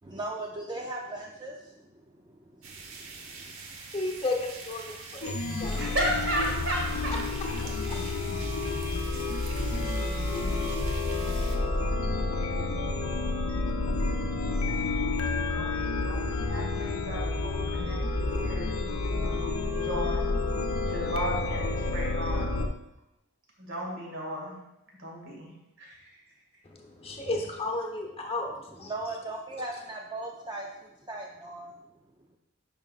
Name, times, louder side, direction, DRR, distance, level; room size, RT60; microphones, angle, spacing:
voice 1, 0.0-3.6 28.8-31.8, right 2 dB, 20° right, 0 dB, 0.4 m, -39 dB
sound 1, 2.6-11.6, right 4 dB, 80° right, 1.0 m, -44 dB
voice 2, 3.9-5.8 26.6-28.9, left 2 dB, 25° left, 1 dB, 0.9 m, -33 dB
Chime, 5.2-22.7, left 3 dB, 75° left, 0.6 m, -29 dB
voice 3, 5.7-7.2 15.5-18.6 19.2-20.3 20.9-22.5 23.6-24.5 25.0-25.5 25.8-26.1, equal, 65° right, -2 dB, 2.0 m, -34 dB
9.2 x 5.1 x 2.4 m, 0.91 s
head